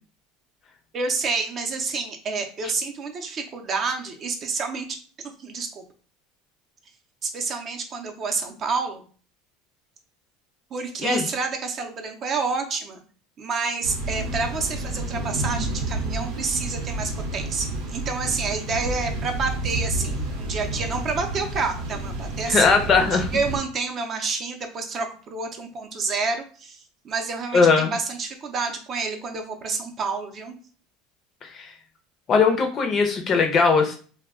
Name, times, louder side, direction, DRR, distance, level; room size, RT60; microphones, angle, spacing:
voice 1, 0.9-4.9 5.2-5.7 7.2-9.0 10.7-13.0 13.4-22.7 23.1-30.6, right 4 dB, 35° right, 4 dB, 0.5 m, -29 dB
sound 1, 13.8-23.6, right 2 dB, 90° right, 0.7 m, -30 dB
voice 2, 22.5-23.3 27.5-27.9 31.4-31.7 32.3-34.0, left 4 dB, 35° left, 5 dB, 0.5 m, -19 dB
2.2 x 2.1 x 3.5 m, 0.40 s
supercardioid pair, 130°, 0 cm